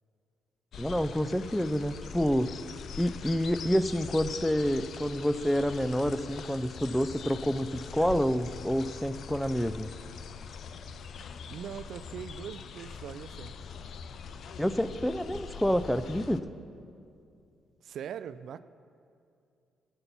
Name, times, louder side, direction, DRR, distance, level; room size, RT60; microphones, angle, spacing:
sound 1, 0.7-16.4, left 6 dB, 60° left, 0.5 m, -43 dB
voice 1, 0.8-2.5 3.0-9.9 14.6-16.4, equal, 5° left, 13 dB, 0.4 m, -28 dB
voice 2, 11.5-13.6 17.8-18.6, right 8 dB, 70° right, 14 dB, 0.3 m, -41 dB
13.5 x 6.9 x 5.9 m, 2.5 s
cardioid pair, 90°, 0 cm